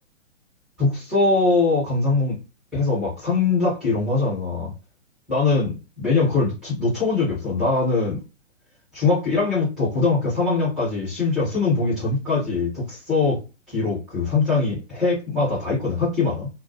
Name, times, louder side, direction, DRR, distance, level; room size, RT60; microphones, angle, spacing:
voice 1, 0.8-2.4 2.7-4.7 5.3-8.2 8.9-16.5, left 3 dB, ahead, 0.4 m, -22 dB
2.4 x 2.2 x 2.4 m
figure-of-eight pair, 125°, 39 cm